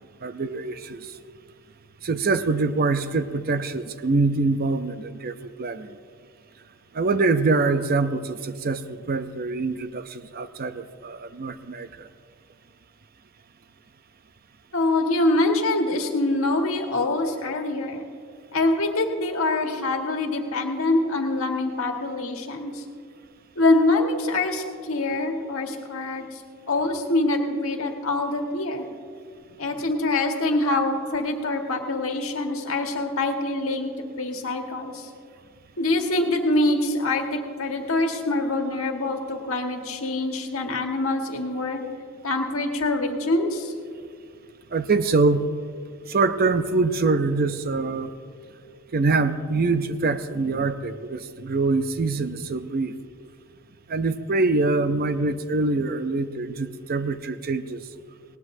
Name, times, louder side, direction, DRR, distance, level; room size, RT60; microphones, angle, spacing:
voice 1, 0.2-1.2 2.0-6.0 6.9-12.1 44.7-45.5 46.1-48.1 48.9-53.0 53.9-57.9, right 3 dB, 45° right, 11 dB, 0.6 m, -24 dB
voice 2, 14.7-18.0 18.5-22.8 23.6-26.4 26.7-28.9 29.6-35.1 35.8-41.8 42.2-43.7, left 2 dB, 85° left, 3 dB, 1.6 m, -25 dB
19.5 x 18.0 x 2.7 m, 2.2 s
head